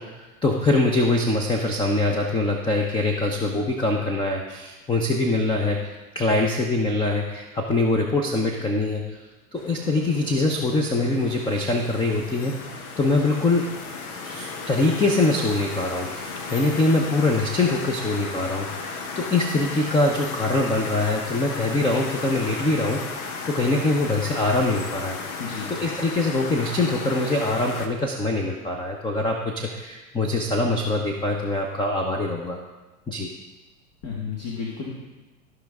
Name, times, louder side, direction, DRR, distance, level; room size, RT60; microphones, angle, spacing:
voice 1, 0.0-5.8 6.1-9.2 9.5-13.7 14.2-25.4 25.7-32.6 33.1-33.3, left 2 dB, 10° left, 1 dB, 0.8 m, -23 dB
sound 1, 9.6-27.9, left 4 dB, 65° left, 1.2 m, -35 dB
voice 2, 25.4-25.7 34.0-34.9, left 5 dB, 45° left, -3 dB, 1.8 m, -32 dB
15.0 x 5.4 x 3.6 m, 1.2 s
hypercardioid pair, 95°, 47 cm